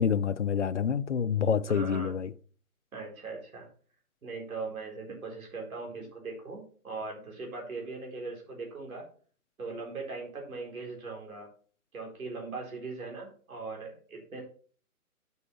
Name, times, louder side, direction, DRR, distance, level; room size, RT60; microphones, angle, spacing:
voice 1, 0.0-2.3, left 7 dB, 50° left, 0.6 m, -27 dB
voice 2, 1.7-2.1 2.9-3.7 4.2-9.1 9.6-11.5 11.9-14.4, right 3 dB, 65° right, 4.3 m, -40 dB
7.0 x 6.2 x 5.7 m
hypercardioid pair, 165°, 45 cm